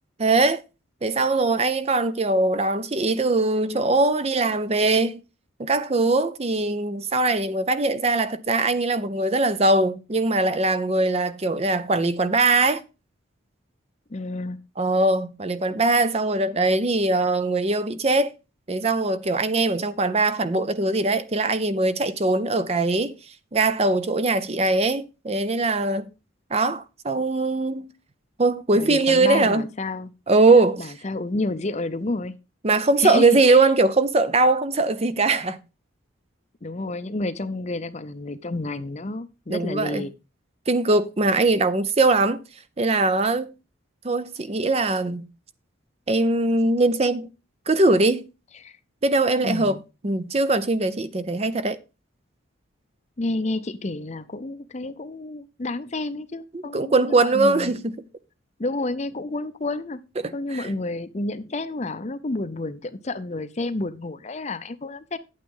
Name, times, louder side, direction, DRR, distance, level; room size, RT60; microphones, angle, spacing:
voice 1, 0.2-0.6 1.0-5.2 5.6-12.8 14.8-18.3 18.7-23.2 23.5-26.1 26.5-27.9 28.4-29.7 30.3-30.9 32.6-35.6 39.5-40.0 40.7-42.4 42.8-43.5 44.0-45.3 46.1-47.3 47.7-48.3 49.0-49.8 50.0-51.8 56.5-57.9 60.2-60.7, right 2 dB, 30° right, 0.5 m, -21 dB
voice 2, 14.1-14.6 28.7-30.1 30.8-32.3 33.0-33.6 36.6-40.1 48.6-48.7 49.4-49.8 53.2-57.8 58.6-60.0 60.3-65.2, left 2 dB, 35° left, 0.6 m, -30 dB
9.1 x 8.7 x 3.8 m
head